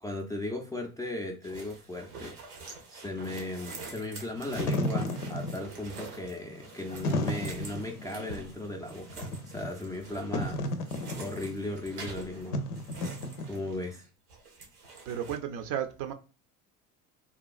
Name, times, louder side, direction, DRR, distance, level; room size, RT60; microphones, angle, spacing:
voice 1, 0.0-2.6 2.9-10.6 11.2-12.6 13.4-14.1, left 2 dB, 10° left, 0.4 m, -37 dB
sound 1, 1.4-14.0 14.3-15.4, right 4 dB, 85° right, 1.0 m, -46 dB
Wind / Fire, 4.3-13.9, left 1 dB, 85° left, 0.6 m, -34 dB
voice 2, 15.1-16.1, right 9 dB, 45° right, 0.5 m, -33 dB
3.0 x 2.2 x 2.3 m
hypercardioid pair, 75°, 45 cm